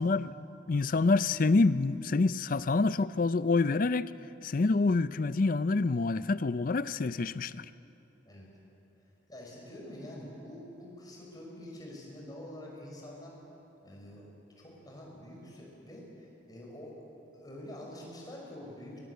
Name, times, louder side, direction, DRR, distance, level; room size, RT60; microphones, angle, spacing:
voice 1, 0.0-4.1 4.4-7.6, left 3 dB, 45° left, 15 dB, 0.4 m, -27 dB
voice 2, 9.3-13.3 13.8-14.3 14.6-17.0 17.3-19.0, left 1 dB, 20° left, -2 dB, 5.8 m, -46 dB
22.0 x 22.0 x 8.2 m, 2.8 s
head